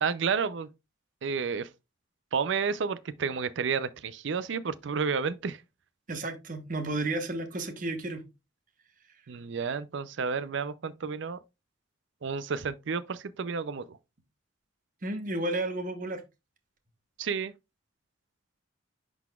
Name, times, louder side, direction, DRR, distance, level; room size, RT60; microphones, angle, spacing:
voice 1, 0.0-0.7 1.2-1.7 2.3-5.6 9.3-11.4 12.2-14.0 17.2-17.5, right 5 dB, 65° right, 0.4 m, -31 dB
voice 2, 6.1-8.3 15.0-16.2, right 2 dB, 40° right, 1.0 m, -32 dB
10.5 x 4.0 x 2.3 m
head